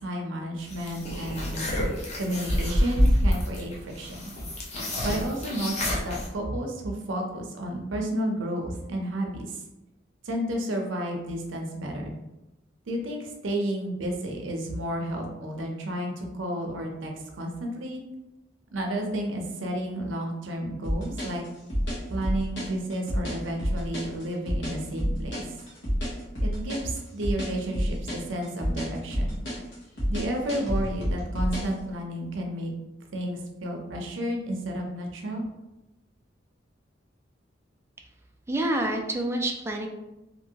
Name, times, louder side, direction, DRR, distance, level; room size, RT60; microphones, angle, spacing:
voice 1, 0.0-1.6 2.2-4.2 5.0-9.5 10.2-12.1 12.9-18.0 18.7-21.4 22.1-25.4 26.4-29.4 30.1-32.7 33.1-35.5, right 1 dB, 90° right, 2 dB, 0.6 m, -31 dB
sound 1, 0.7-6.3, equal, 35° left, 0.6 m, -27 dB
sound 2, 20.8-31.8, equal, 75° left, 1.2 m, -29 dB
voice 2, 38.5-39.9, right 1 dB, 15° right, 2 dB, 0.3 m, -27 dB
2.9 x 2.6 x 2.7 m, 0.97 s
head